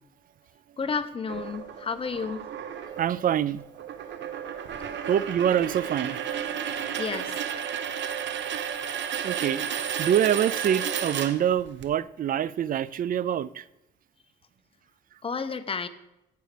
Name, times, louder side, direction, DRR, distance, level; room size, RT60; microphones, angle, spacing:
voice 1, 0.8-2.5 7.0-7.5 15.2-15.9, left 5 dB, 30° left, 0.7 m, -31 dB
sound 1, 1.3-11.9, right 8 dB, 65° right, 0.9 m, -33 dB
voice 2, 3.0-3.6 5.1-6.2 9.2-9.6 10.0-13.6, right 10 dB, 45° right, 0.4 m, -25 dB
14.0 x 6.5 x 3.4 m
cardioid pair, 90°, 20 cm